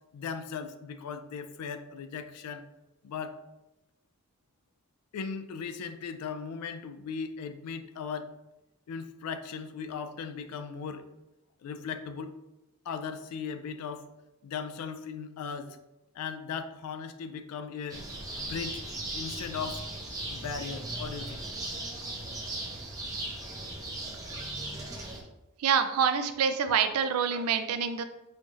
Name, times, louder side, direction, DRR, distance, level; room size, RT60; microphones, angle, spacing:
voice 1, 0.1-2.6 3.0-3.4 5.1-8.3 8.9-11.1 11.6-12.3 12.9-14.1 14.4-15.8 16.1-18.0 18.4-18.8 19.1-19.8 20.3-21.4, left 6 dB, 90° left, 9 dB, 0.3 m, -37 dB
sound 1, 17.9-25.2, right 1 dB, 15° right, 0.5 m, -38 dB
voice 2, 25.6-28.0, right 7 dB, 80° right, 9 dB, 0.4 m, -26 dB
4.4 x 2.4 x 2.6 m, 0.95 s
head